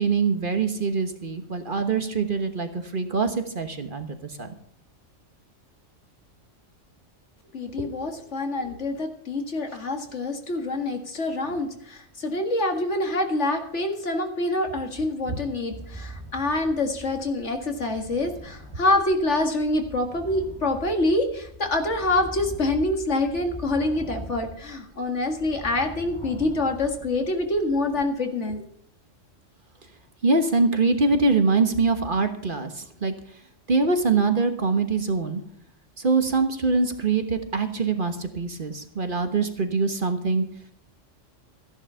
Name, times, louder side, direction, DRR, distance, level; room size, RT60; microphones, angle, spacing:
voice 1, 0.0-4.5 15.3-15.4 30.2-33.1 33.7-35.4 36.0-40.4, right 4 dB, 45° right, 7 dB, 1.4 m, -24 dB
voice 2, 7.5-28.6, left 2 dB, 65° left, 4 dB, 2.3 m, -26 dB
sound 1, 15.7-28.1, equal, 20° left, 3.8 m, -42 dB
14.5 x 10.5 x 5.6 m, 0.66 s
omnidirectional pair, 1.3 m